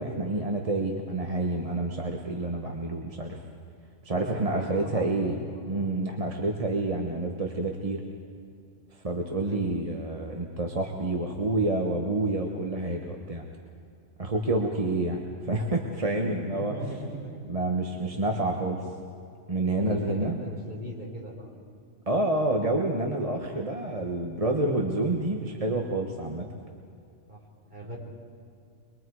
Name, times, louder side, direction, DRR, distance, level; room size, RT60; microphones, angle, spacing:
voice 1, 0.0-3.4 4.0-5.4 5.7-8.0 9.0-13.4 14.2-16.7 17.5-18.9 19.5-20.4 22.1-26.5, right 2 dB, 30° right, 1 dB, 1.3 m, -28 dB
voice 2, 4.1-6.0 9.4-9.6 16.1-17.5 18.1-18.3 19.7-21.5 27.3-27.4 27.7-28.0, right 1 dB, 45° right, -3 dB, 4.4 m, -39 dB
24.0 x 22.5 x 4.8 m, 2.4 s
omnidirectional pair, 1.3 m